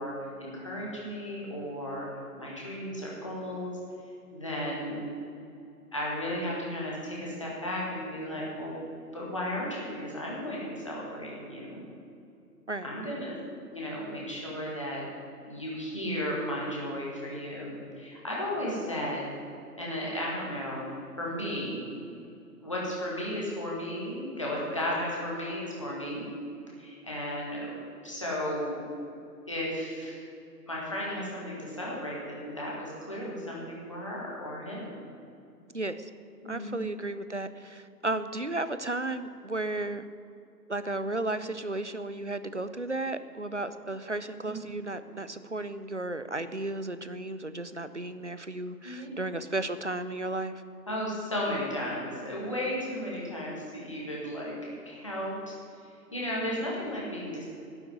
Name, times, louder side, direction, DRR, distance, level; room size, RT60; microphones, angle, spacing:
voice 1, 0.0-2.1 2.4-3.7 4.3-5.0 5.9-8.9 9.1-11.8 12.8-13.4 13.7-15.0 15.4-19.3 19.8-20.8 21.2-21.9 22.6-26.3 26.8-27.8 28.0-28.8 29.5-30.2 30.7-35.0 36.4-36.9 44.4-44.6 45.0-45.1 48.8-49.1 50.9-55.5 56.1-57.5, equal, 20° left, -5 dB, 1.9 m, -34 dB
voice 2, 35.7-36.1 36.4-40.1 40.7-50.6, right 2 dB, 45° right, 12 dB, 0.6 m, -34 dB
12.0 x 8.0 x 9.3 m, 2.6 s
figure-of-eight pair, 180°, 49 cm